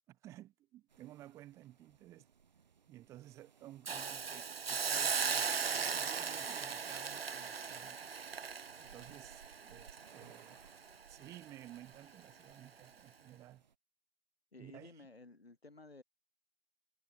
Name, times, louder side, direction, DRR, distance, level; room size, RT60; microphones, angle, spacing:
voice 1, 0.1-2.3 2.9-5.5 5.8-8.1 8.8-10.6 11.1-13.6 14.6-15.1, right 14 dB, 10° right, 1.9 m, -55 dB
sound 1, 0.9-13.8, right 6 dB, 45° right, 1.6 m, -64 dB
Hiss, 3.9-10.9 11.3-11.4, right 6 dB, 75° right, 0.8 m, -38 dB
voice 2, 14.5-16.0, left 3 dB, 85° left, 5.7 m, -55 dB
figure-of-eight pair, 155°, 30 cm